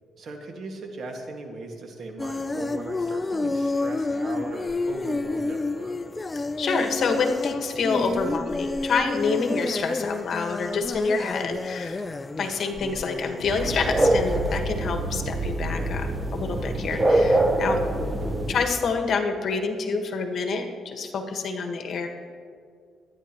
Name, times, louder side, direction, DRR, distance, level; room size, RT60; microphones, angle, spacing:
voice 1, 0.2-6.0 17.6-18.2, right 2 dB, 60° right, 2 dB, 1.8 m, -38 dB
sound 1, 2.2-14.6, left 2 dB, 20° left, 0.4 m, -30 dB
voice 2, 6.3-12.0 12.4-17.8 18.5-22.1, left 4 dB, 60° left, 4 dB, 1.4 m, -27 dB
sound 2, 13.4-18.6, right 1 dB, 20° right, 0.8 m, -24 dB
23.5 x 9.9 x 3.0 m, 2.2 s
cardioid pair, 90°, 0 cm